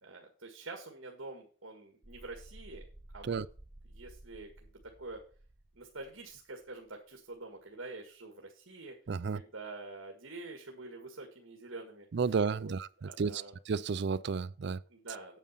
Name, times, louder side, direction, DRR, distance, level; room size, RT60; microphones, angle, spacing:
voice 1, 0.0-2.9 3.1-3.4 3.9-4.7 5.0-5.2 5.8-8.9 9.3-12.1 12.5-13.5 14.9-15.4, right 2 dB, 70° right, 1.8 m, -46 dB
sound 1, 2.0-6.6, right 1 dB, 20° right, 0.7 m, -54 dB
voice 2, 9.1-9.4 12.1-14.8, right 5 dB, 55° right, 0.4 m, -32 dB
9.0 x 7.5 x 5.7 m
head